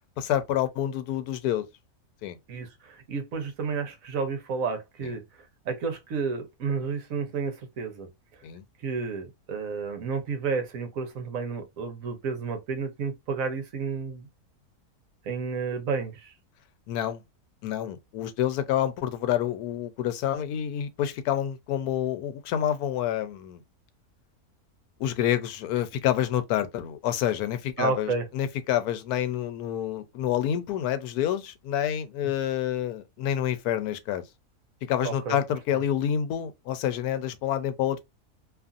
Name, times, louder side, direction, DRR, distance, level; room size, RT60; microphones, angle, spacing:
voice 1, 0.2-1.7 2.2-2.4 8.4-8.6 16.9-17.2 17.6-23.6 25.0-34.2 34.8-38.0, left 10 dB, 90° left, 1.1 m, -28 dB
voice 2, 2.5-5.2 5.6-8.1 8.8-14.3 15.2-16.3 27.8-28.3 35.0-35.4 35.7-35.8, right 5 dB, 65° right, 1.1 m, -31 dB
2.8 x 2.5 x 2.4 m
omnidirectional pair, 1.6 m